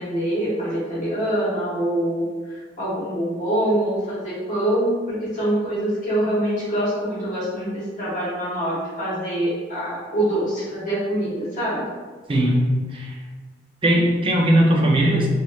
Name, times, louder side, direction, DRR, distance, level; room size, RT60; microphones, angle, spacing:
voice 1, 0.0-2.3 2.8-11.8, right 1 dB, 45° left, -8 dB, 1.2 m, -24 dB
voice 2, 12.3-13.1 13.8-15.3, right 1 dB, 30° right, -1 dB, 0.5 m, -19 dB
3.1 x 2.9 x 2.4 m, 1.4 s
head